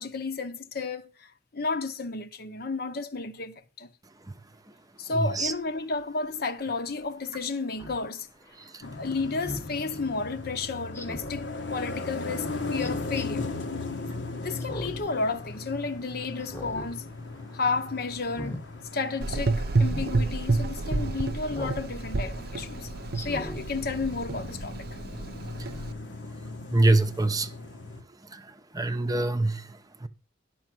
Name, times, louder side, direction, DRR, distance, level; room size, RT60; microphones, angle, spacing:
voice 1, 0.0-3.9 5.0-8.3 8.8-13.5 14.4-17.0 17.5-18.5 18.9-22.9 23.2-24.8, left 3 dB, 55° left, 0.9 m, -32 dB
voice 2, 5.1-5.5 8.6-8.8 25.6-25.7 26.7-27.5 28.3-30.1, right 2 dB, 20° right, 0.7 m, -26 dB
Speech synthesizer, 7.8-8.0 9.4-9.7 10.9-11.4 12.8-13.3 14.6-15.1 15.5-15.6 16.4-16.9 17.3-17.6 18.2-18.6 19.8-20.1 21.5-21.8 22.3-22.4 23.1-23.6 24.1-24.2, left 1 dB, 15° left, 1.1 m, -39 dB
sound 1, 8.8-28.0, left 3 dB, 75° left, 1.1 m, -38 dB
Gurgling / Engine, 19.2-25.9, right 3 dB, 55° right, 0.6 m, -29 dB
11.0 x 6.2 x 6.0 m
head